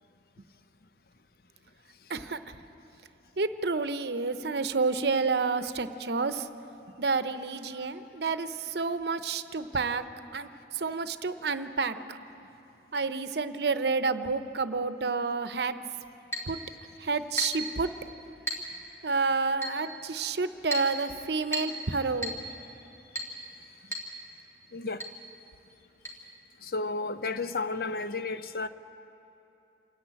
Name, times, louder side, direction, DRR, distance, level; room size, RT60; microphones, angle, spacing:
voice 1, 2.1-2.6 3.4-6.5 7.0-10.0 10.3-12.2 12.9-15.8 16.5-16.6 17.0-17.9 19.0-22.3, right 4 dB, 70° right, 11 dB, 0.7 m, -29 dB
Chink clink, 16.3-16.5 17.4-17.7 18.5-18.7 19.6-19.8 20.7-20.9 21.5-21.8 22.2-22.4 23.2-23.4 23.9-24.1 24.4-24.5 25.0-25.2 26.0-26.1, right 1 dB, 15° left, 2.5 m, -33 dB
voice 2, 24.7-25.0 26.6-28.7, left 3 dB, 55° left, 11 dB, 0.6 m, -32 dB
28.5 x 10.5 x 8.8 m, 2.9 s
head